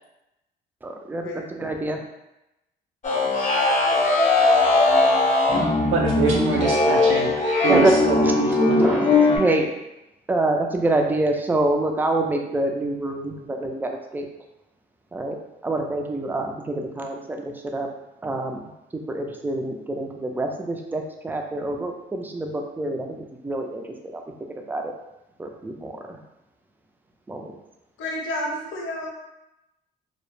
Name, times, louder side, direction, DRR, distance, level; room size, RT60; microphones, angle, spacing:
voice 1, 0.8-2.0 7.6-7.9 8.2-8.3 8.7-9.8 10.3-14.3 15.1-15.4 15.6-18.7 19.1-23.9 24.1-24.2 24.6-24.9 25.4-26.2 27.3-27.5, right 2 dB, 10° right, 2 dB, 0.3 m, -26 dB
sound 1, 3.0-9.4, left 3 dB, 40° left, 0.6 m, -19 dB
voice 2, 5.9-7.3 7.6-8.8, right 3 dB, 80° right, -2 dB, 0.5 m, -24 dB
voice 3, 28.0-29.1, left 1 dB, 80° left, -1 dB, 0.6 m, -30 dB
2.1 x 2.0 x 3.0 m, 0.92 s
cardioid pair, 90°, 20 cm